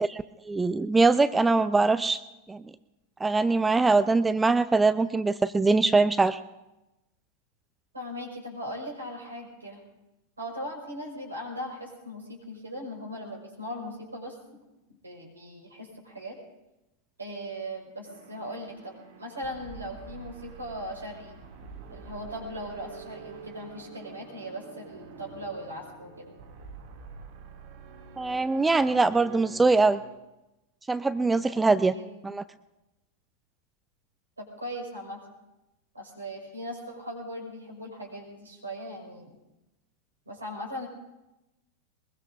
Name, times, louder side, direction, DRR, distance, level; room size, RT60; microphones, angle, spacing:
voice 1, 0.0-2.2 2.5-2.6 3.2-6.4 28.2-30.0 30.9-31.9 32.2-32.4, right 3 dB, 10° right, 14 dB, 0.4 m, -23 dB
voice 2, 7.9-9.8 10.4-14.6 14.9-16.4 17.2-21.4 21.9-26.3 31.5-32.1 34.4-35.2 35.9-39.3 40.2-40.9, equal, 80° right, 0 dB, 5.2 m, -39 dB
sound 1, 18.0-30.1, right 5 dB, 50° right, 2.6 m, -47 dB
22.0 x 21.5 x 2.6 m, 0.97 s
figure-of-eight pair, 90°, 0 cm